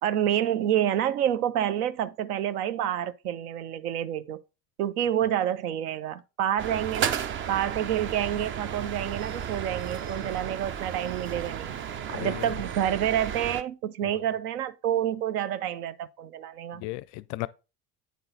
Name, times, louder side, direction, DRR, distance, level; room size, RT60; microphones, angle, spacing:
voice 1, 0.0-4.4 4.8-11.7 12.1-16.8, right 10 dB, 65° right, 0.7 m, -28 dB
sound 1, 6.6-13.6, right 8 dB, 25° right, 0.4 m, -33 dB
voice 2, 12.1-12.6 14.0-14.3 16.7-17.5, left 20 dB, 40° left, 0.4 m, -36 dB
9.2 x 3.9 x 3.8 m
figure-of-eight pair, 65°, 48 cm